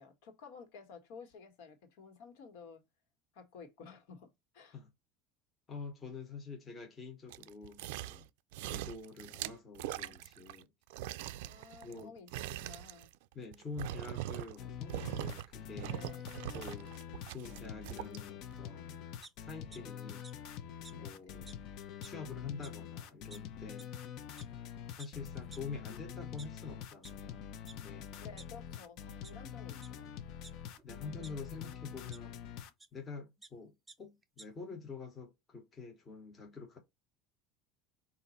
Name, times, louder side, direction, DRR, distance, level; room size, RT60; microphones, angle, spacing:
voice 1, 0.0-2.8 3.3-4.8 11.4-13.1 15.8-16.3 20.9-21.4 28.2-30.1, left 5 dB, 70° left, 1.5 m, -53 dB
voice 2, 5.7-8.3 8.7-10.7 11.8-12.1 13.3-16.0 16.5-16.9 17.3-19.0 19.4-20.3 20.9-21.6 22.0-23.9 24.9-27.5 27.7-28.1 30.8-32.3 32.9-36.8, left 4 dB, 20° left, 0.9 m, -46 dB
sound 1, 7.3-8.3 8.5-10.6 10.9-14.6 14.9-15.5 15.8-18.2 18.6-18.7, right 14 dB, 80° right, 0.3 m, -42 dB
sound 2, 14.6-32.7, left 9 dB, 50° left, 0.5 m, -46 dB
sound 3, 19.2-19.8 20.2-20.3 20.8-20.9 21.5-21.6 21.9-22.2 22.6-22.7 23.3-23.4 23.8-23.9 24.4-24.5 25.0-25.1 25.5-25.6 26.2-27.1 27.7-27.8 28.1-28.8 29.2-29.3 29.8-29.9 30.4-31.3 32.1-32.2 32.8-32.9 33.2-33.5 33.9-34.0 34.2-34.5, right 3 dB, 10° right, 0.4 m, -53 dB
5.2 x 2.5 x 4.0 m
cardioid pair, 170°, 0 cm